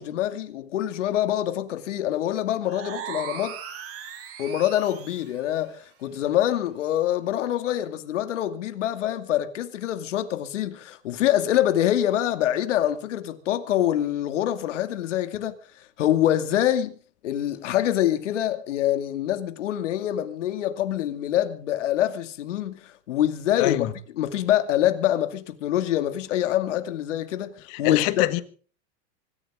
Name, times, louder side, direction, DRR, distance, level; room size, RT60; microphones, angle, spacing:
voice 1, 0.0-3.6 4.4-15.5 16.0-17.0 17.2-28.2, left 12 dB, 80° left, 2.5 m, -25 dB
sound 1, 2.6-5.3, right 8 dB, 40° right, 5.4 m, -38 dB
voice 2, 27.8-28.4, left 17 dB, 50° left, 1.9 m, -23 dB
25.0 x 14.0 x 3.8 m
hypercardioid pair, 120°, 36 cm